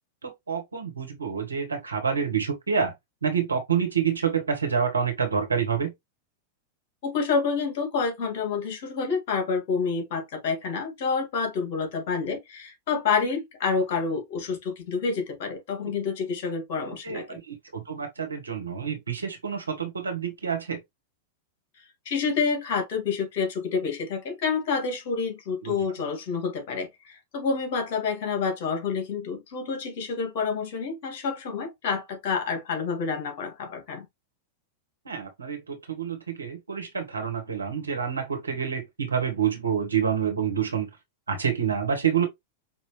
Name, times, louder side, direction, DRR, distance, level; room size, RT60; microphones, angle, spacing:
voice 1, 0.2-2.9 3.2-5.9 16.8-20.8 25.6-25.7 35.0-40.9 41.3-42.3, right 7 dB, 85° right, 1.5 m, -28 dB
voice 2, 7.0-17.4 22.1-34.1, left 5 dB, 55° left, 2.2 m, -28 dB
5.5 x 3.0 x 3.2 m
figure-of-eight pair, 95°, 0 cm